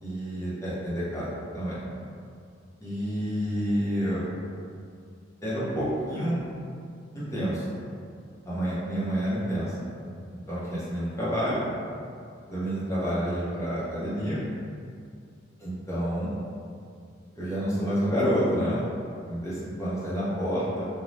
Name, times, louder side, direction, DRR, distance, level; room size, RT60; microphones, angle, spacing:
voice 1, 0.0-1.2 1.5-1.8 2.8-4.2 5.4-6.4 7.1-7.7 8.5-9.7 10.3-11.7 12.5-14.4 15.6-16.3 17.3-18.8 19.3-20.8, equal, 15° left, -10 dB, 0.8 m, -29 dB
2.6 x 2.2 x 3.2 m, 2.3 s
head